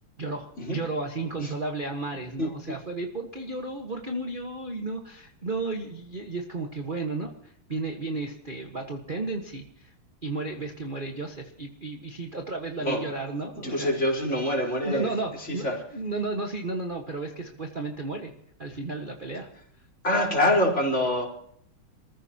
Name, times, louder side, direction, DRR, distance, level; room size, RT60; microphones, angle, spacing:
voice 1, 0.2-9.9 10.2-13.9 14.3-14.4 14.8-18.3 18.6-19.5, right 3 dB, 25° right, 2 dB, 1.5 m, -33 dB
voice 2, 13.6-15.1 15.4-15.8 20.0-21.3, left 1 dB, 30° left, -2 dB, 4.4 m, -25 dB
28.0 x 15.0 x 2.9 m, 0.68 s
omnidirectional pair, 2.4 m